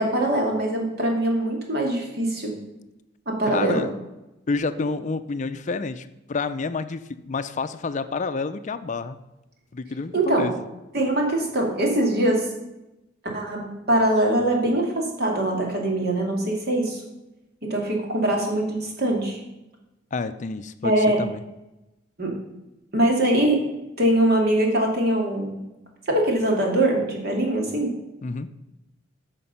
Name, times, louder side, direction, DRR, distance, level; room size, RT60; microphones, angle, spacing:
voice 1, 0.0-2.5 3.3-3.8 10.1-10.5 10.9-12.5 13.3-17.0 17.7-19.4 20.8-21.2 22.2-22.4 22.9-23.6 24.0-25.5 26.1-27.9, right 1 dB, 55° right, 0 dB, 2.5 m, -22 dB
voice 2, 3.5-3.9 4.5-9.2 9.7-10.5 20.1-21.4 28.2-28.5, left 4 dB, 40° left, 11 dB, 0.5 m, -29 dB
14.5 x 5.3 x 5.5 m, 0.96 s
head